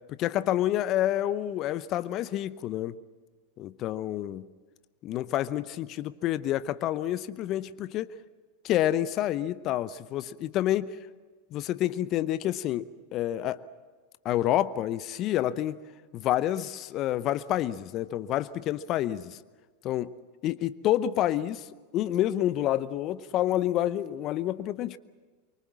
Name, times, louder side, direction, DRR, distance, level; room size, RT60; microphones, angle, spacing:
voice 1, 0.1-3.0 3.6-4.5 5.0-8.1 8.6-11.0 11.5-12.9 13.1-13.6 14.2-15.8 16.1-19.4 19.8-20.1 20.4-21.7 21.9-25.0, left 13 dB, 45° left, 15 dB, 0.7 m, -28 dB
24.5 x 24.0 x 7.5 m, 1.4 s
hypercardioid pair, 90°, 0 cm